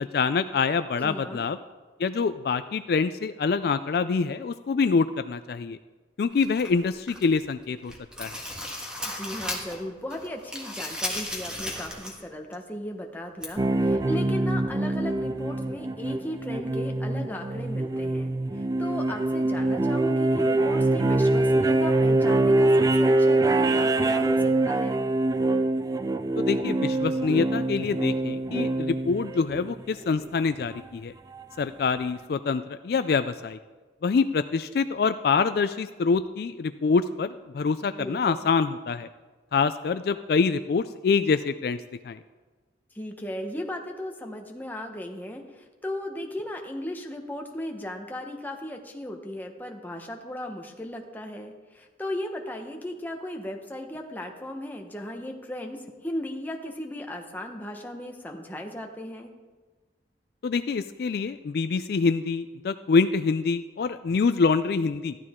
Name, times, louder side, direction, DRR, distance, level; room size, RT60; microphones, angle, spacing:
voice 1, 0.0-1.6 2.0-5.8 6.2-7.9 8.2-8.4 26.4-31.1 31.6-33.6 34.0-39.1 39.5-42.2 60.4-65.2, left 4 dB, 60° left, 12 dB, 0.3 m, -25 dB
voice 2, 1.0-1.5 9.1-25.1 38.0-38.5 42.9-59.3, left 1 dB, 10° left, 2 dB, 1.1 m, -36 dB
sound 1, 6.4-7.4 7.8-9.8 10.1-12.2 12.5-12.6 13.4-13.5, left 1 dB, 5° right, 1.5 m, -35 dB
sound 2, 13.6-29.8 31.4-31.5, right 2 dB, 20° right, 0.3 m, -24 dB
14.0 x 12.0 x 3.7 m, 1.3 s
head